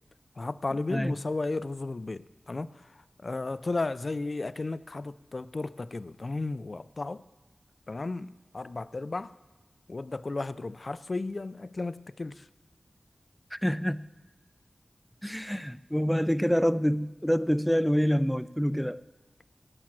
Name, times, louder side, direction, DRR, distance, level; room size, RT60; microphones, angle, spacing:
voice 1, 0.4-7.2 7.9-9.3 9.9-12.5, left 3 dB, 55° left, 0.5 m, -34 dB
voice 2, 13.5-14.1 15.2-19.0, equal, 5° left, 0.5 m, -26 dB
17.5 x 9.1 x 6.1 m
cardioid pair, 45°, 0 cm